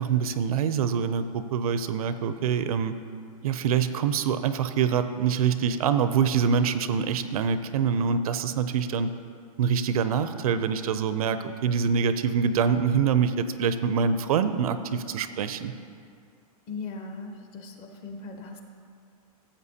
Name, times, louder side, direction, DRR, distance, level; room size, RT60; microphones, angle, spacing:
voice 1, 0.0-2.9 3.4-9.1 9.6-15.7, right 6 dB, 70° right, 11 dB, 0.6 m, -25 dB
voice 2, 16.7-18.6, left 4 dB, 30° left, 4 dB, 0.9 m, -38 dB
14.0 x 7.5 x 2.8 m, 2.3 s
hypercardioid pair, 150°, 19 cm